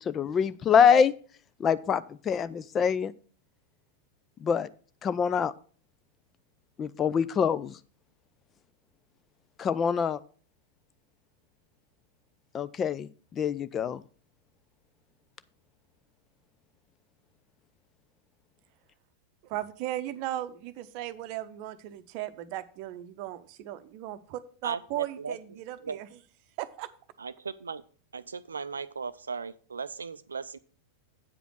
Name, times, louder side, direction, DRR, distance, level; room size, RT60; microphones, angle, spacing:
voice 1, 0.1-1.1 1.6-3.1 4.4-4.7 5.0-5.5 6.8-7.7 9.6-10.2 12.5-13.1 13.4-14.0, left 7 dB, 25° left, 16 dB, 0.4 m, -25 dB
voice 2, 19.4-26.2 26.6-26.9, right 14 dB, 45° right, 13 dB, 0.7 m, -37 dB
voice 3, 24.6-25.4 25.8-26.0 27.2-27.8 28.1-30.6, right 5 dB, 75° right, 14 dB, 0.4 m, -37 dB
8.5 x 5.0 x 6.2 m, 0.43 s
figure-of-eight pair, 90°, 0 cm